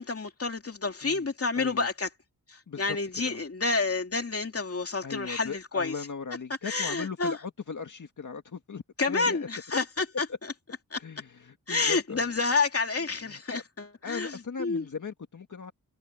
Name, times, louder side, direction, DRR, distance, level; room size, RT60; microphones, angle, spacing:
voice 1, 0.0-2.1 2.5-5.9 6.6-7.4 9.0-10.3 10.9-11.0 11.7-14.9, left 3 dB, 40° left, 2.8 m, -29 dB
voice 2, 1.6-1.9 2.7-3.0 3.2-3.4 5.0-9.5 11.0-12.2 13.3-13.6 14.0-15.7, left 5 dB, 55° left, 1.9 m, -38 dB
wide cardioid pair, 115°, 36 cm